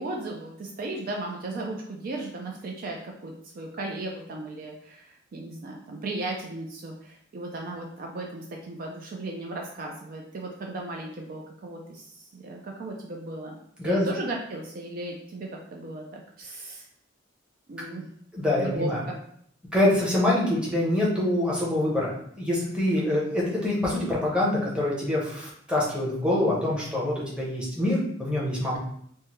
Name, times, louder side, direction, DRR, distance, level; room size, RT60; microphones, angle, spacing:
voice 1, 0.0-13.6 13.8-16.9 17.7-18.1 18.6-19.2, right 2 dB, 50° right, 0 dB, 0.4 m, -36 dB
voice 2, 18.3-19.0 19.7-28.8, left 1 dB, 5° right, -6 dB, 0.8 m, -25 dB
3.4 x 2.1 x 3.0 m, 0.66 s
head